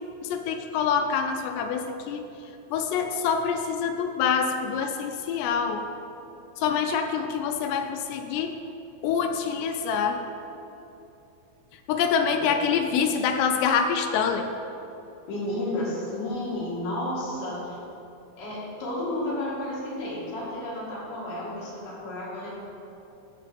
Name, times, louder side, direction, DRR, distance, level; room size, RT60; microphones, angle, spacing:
voice 1, 0.2-2.2 2.7-5.8 6.6-8.5 9.0-10.2 11.9-14.5, left 6 dB, 85° left, 6 dB, 2.7 m, -26 dB
voice 2, 15.3-17.8 18.4-22.5, left 1 dB, 65° left, -7 dB, 3.6 m, -32 dB
11.5 x 7.7 x 3.4 m, 2.8 s
omnidirectional pair, 5.0 m